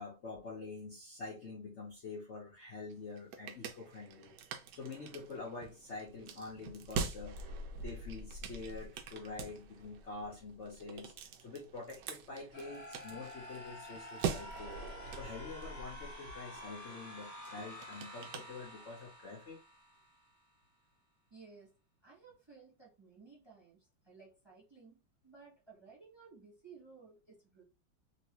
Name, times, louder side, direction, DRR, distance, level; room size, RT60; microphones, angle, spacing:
voice 1, 0.0-4.3 4.7-7.5 7.8-11.1 11.4-14.8 15.1-19.6, left 3 dB, 90° left, 0.6 m, -46 dB
sound 1, 2.9-19.1, right 5 dB, 80° right, 0.9 m, -44 dB
sound 2, 12.5-20.4, left 1 dB, 20° left, 1.2 m, -50 dB
voice 2, 21.3-27.6, right 5 dB, 15° right, 0.9 m, -58 dB
3.1 x 2.9 x 2.9 m
omnidirectional pair, 2.4 m